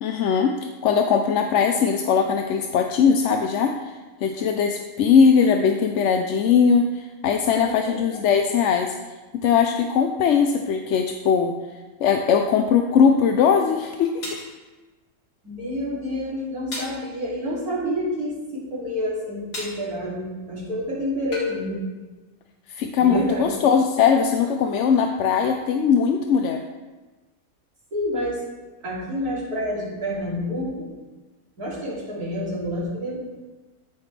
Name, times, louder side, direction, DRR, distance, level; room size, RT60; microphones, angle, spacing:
voice 1, 0.0-3.9 4.2-8.9 9.4-11.5 12.0-14.2 22.7-26.6, left 6 dB, 65° left, 4 dB, 0.8 m, -20 dB
voice 2, 7.4-8.2 15.4-21.8 23.0-23.5 27.9-28.4 28.8-30.9 31.6-33.2, left 1 dB, 80° right, -7 dB, 3.5 m, -28 dB
sound 1, 14.2-14.5 16.7-17.0 19.5-19.8 21.3-21.6, left 1 dB, 50° left, 2.4 m, -33 dB
14.0 x 5.9 x 3.3 m, 1.2 s
omnidirectional pair, 1.6 m